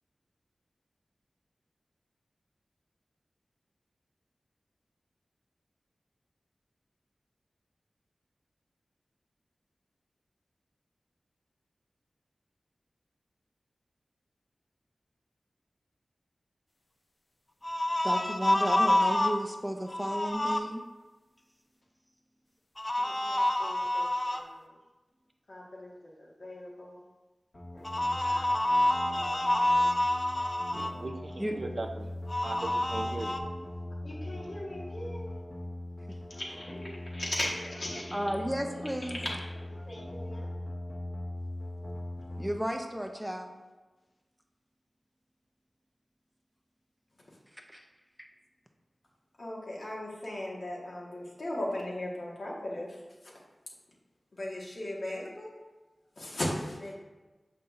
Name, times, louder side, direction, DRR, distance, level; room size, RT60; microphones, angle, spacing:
sound 1, 17.6-19.4 19.9-20.6 22.8-24.4 27.8-30.9 32.3-33.4, left 1 dB, 35° left, 0.5 m, -28 dB
voice 1, 18.0-20.8 31.4-31.6 37.9-39.2 42.4-43.6 47.5-47.8 48.2-48.3, equal, 5° right, 0.7 m, -33 dB
voice 2, 23.0-24.7 25.5-27.0 27.7-28.5 28.7-29.9 34.0-35.3 36.3-38.8 39.1-39.4 39.8-40.5 49.4-53.3 54.3-55.5 56.1-56.9, left 1 dB, 75° left, 1.6 m, -39 dB
sound 2, 27.5-42.5, left 1 dB, 50° left, 1.4 m, -41 dB
voice 3, 30.7-32.1 32.4-33.4, right 2 dB, 60° right, 0.6 m, -38 dB
6.6 x 5.6 x 2.6 m
cardioid pair, 50°, 0 cm